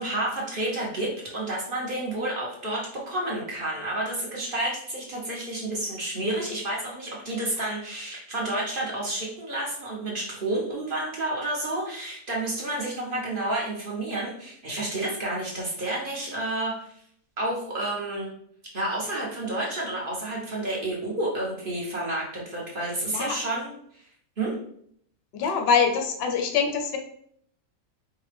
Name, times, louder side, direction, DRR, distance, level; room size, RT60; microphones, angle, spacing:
voice 1, 0.0-16.7 17.4-18.3 18.7-23.7 24.4-24.6, right 1 dB, 45° right, -4 dB, 0.8 m, -30 dB
voice 2, 25.3-27.0, left 6 dB, 60° left, 4 dB, 0.7 m, -24 dB
4.6 x 2.2 x 3.2 m, 0.66 s
omnidirectional pair, 1.6 m